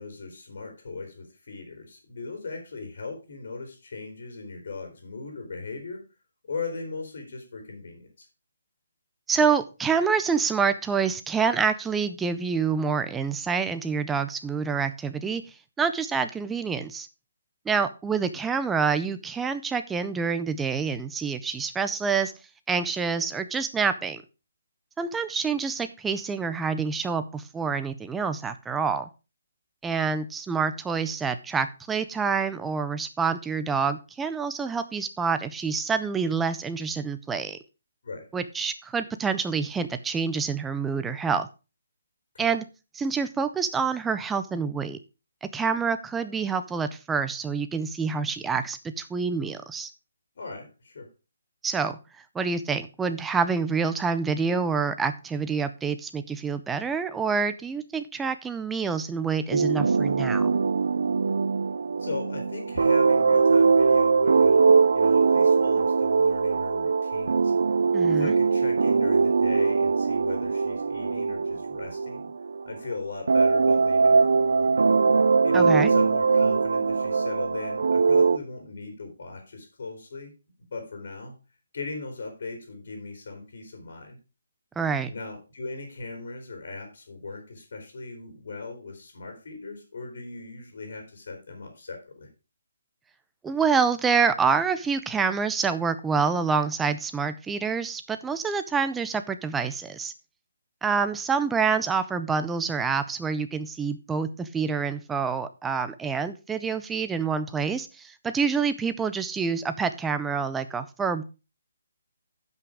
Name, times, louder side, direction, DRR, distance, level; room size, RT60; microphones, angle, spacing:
voice 1, 0.0-6.0 6.5-8.3 38.0-38.3 42.3-42.5 50.3-51.1 62.0-67.5 68.1-72.3 72.6-74.8 75.4-80.3 80.7-81.4 81.7-84.2 85.1-92.3, left 3 dB, 50° left, 3 dB, 3.2 m, -38 dB
voice 2, 9.3-15.4 15.8-17.1 17.7-22.3 22.7-24.2 25.0-29.1 29.8-37.6 38.3-41.5 42.4-42.6 42.9-45.0 45.4-49.9 51.6-52.0 52.3-60.5 67.9-68.3 75.5-75.9 84.8-85.1 93.4-100.1 100.8-111.2, right 5 dB, 5° right, 10 dB, 0.4 m, -27 dB
sound 1, 59.5-72.8 73.3-78.4, right 4 dB, 65° right, 0.4 m, -21 dB
10.5 x 5.8 x 4.8 m, 0.30 s
hypercardioid pair, 175°, 0 cm